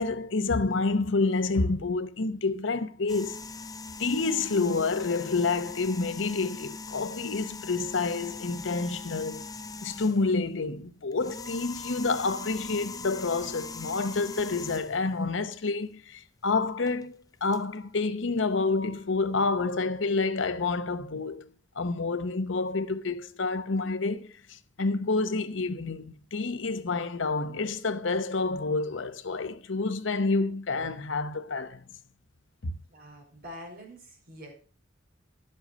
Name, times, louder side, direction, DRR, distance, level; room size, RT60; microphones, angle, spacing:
voice 1, 0.0-3.4 4.0-9.4 9.8-21.4 21.8-24.3 24.8-31.8 32.6-32.7, left 3 dB, 70° left, 0.9 m, -28 dB
sound 1, 3.1-10.4 11.1-15.1 16.9-17.0 17.5-17.6, left 3 dB, 20° left, 0.6 m, -41 dB
voice 2, 32.9-34.5, equal, 50° right, 5.0 m, -45 dB
12.5 x 7.9 x 5.1 m
head